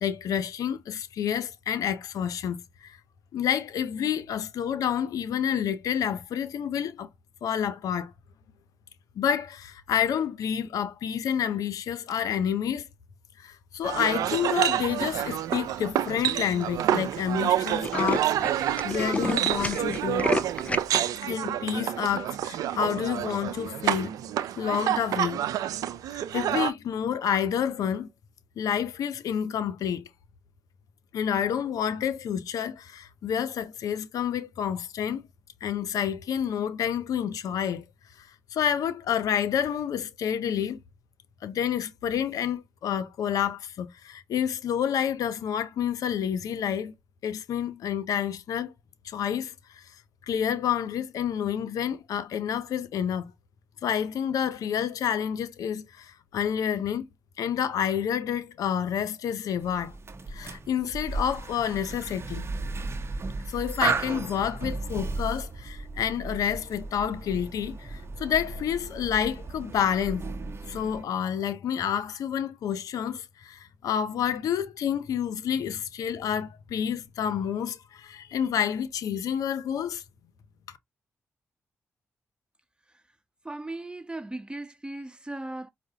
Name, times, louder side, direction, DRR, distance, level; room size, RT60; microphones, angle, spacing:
voice 1, 0.0-3.0 3.3-7.1 7.4-8.1 9.2-12.9 13.4-20.3 21.2-24.1 24.6-25.4 26.3-28.1 28.6-30.0 31.1-35.2 35.6-37.8 38.2-40.8 41.4-46.9 47.2-48.7 49.0-49.8 50.3-53.3 53.8-57.1 57.4-59.9 60.3-62.5 63.5-70.2 70.7-80.0, left 8 dB, 75° left, 0.5 m, -29 dB
sound 1, 13.8-26.7, right 11 dB, 80° right, 0.4 m, -28 dB
Tools, 14.9-15.3 15.9-16.0 16.3-16.4 16.6-16.8 17.1-17.2 17.5-21.0, left 2 dB, 20° left, 0.5 m, -30 dB
sound 2, 59.6-71.0, right 3 dB, 45° right, 0.7 m, -35 dB
voice 2, 83.4-85.7, right 2 dB, 15° right, 0.8 m, -37 dB
4.6 x 2.1 x 2.7 m
supercardioid pair, 40°, 6 cm